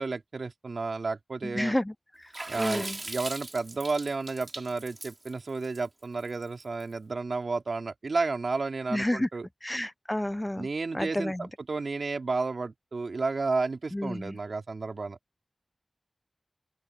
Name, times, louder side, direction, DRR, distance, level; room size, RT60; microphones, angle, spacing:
voice 1, 0.0-1.7 2.5-9.5 10.6-15.2, right 3 dB, 70° right, 2.9 m, -32 dB
voice 2, 1.4-1.9 2.2-2.3 2.6-3.0 8.9-9.3 9.6-10.7 10.9-11.5 13.9-14.4, left 1 dB, 15° left, 0.6 m, -30 dB
Water / Splash splatter, 2.3-6.8, right 2 dB, 40° right, 4.0 m, -39 dB
open air
cardioid pair, 50°, 0 cm